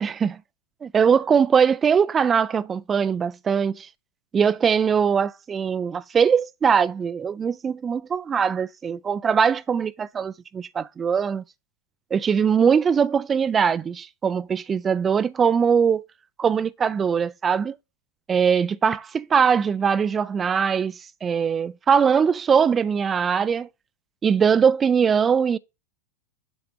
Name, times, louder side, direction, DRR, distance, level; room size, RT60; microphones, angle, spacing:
voice 1, 0.0-0.4 0.8-3.9 4.3-11.4 12.1-16.0 16.4-17.7 18.3-23.7 24.2-25.6, right 6 dB, 20° right, 0.3 m, -21 dB
7.6 x 3.3 x 4.9 m
figure-of-eight pair, 90°, 0 cm